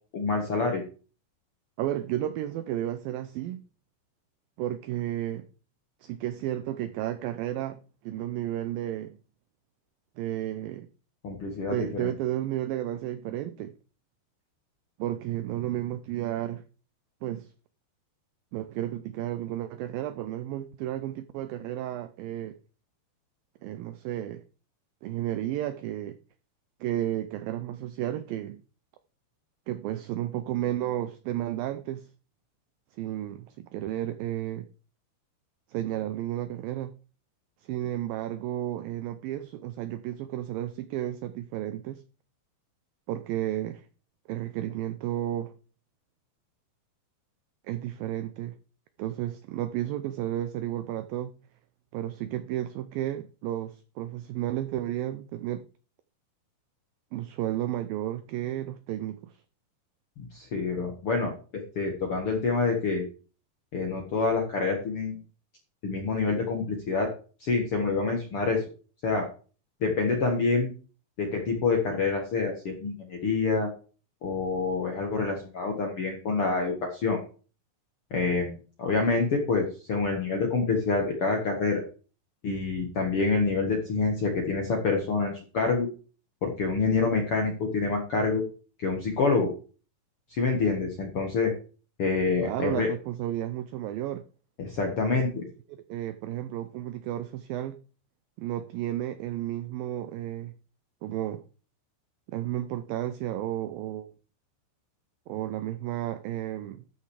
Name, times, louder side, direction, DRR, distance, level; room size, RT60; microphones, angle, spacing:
voice 1, 0.1-0.8 11.2-12.1 60.2-63.0 63.7-65.2 65.8-67.1 67.4-68.6 69.0-69.2 69.8-70.7 71.2-73.7 74.2-77.2 78.1-81.8 82.4-85.9 86.4-88.4 88.8-89.5 90.3-91.5 92.0-92.9 94.6-95.4, left 4 dB, 60° left, 1.5 m, -27 dB
voice 2, 1.8-3.6 4.6-5.5 6.0-9.2 10.2-10.9 11.7-13.7 15.0-16.6 17.2-17.5 18.5-22.6 23.6-24.4 25.0-26.2 26.8-28.6 29.7-32.1 33.0-34.7 35.7-36.9 37.6-42.0 43.1-43.9 44.3-45.5 47.7-48.6 49.0-51.3 51.9-55.6 57.1-59.4 92.4-94.2 95.1-95.3 95.7-97.8 98.4-100.5 101.0-101.4 102.3-104.1 105.3-106.8, right 13 dB, 90° right, 2.0 m, -32 dB
13.0 x 5.8 x 4.8 m
omnidirectional pair, 4.9 m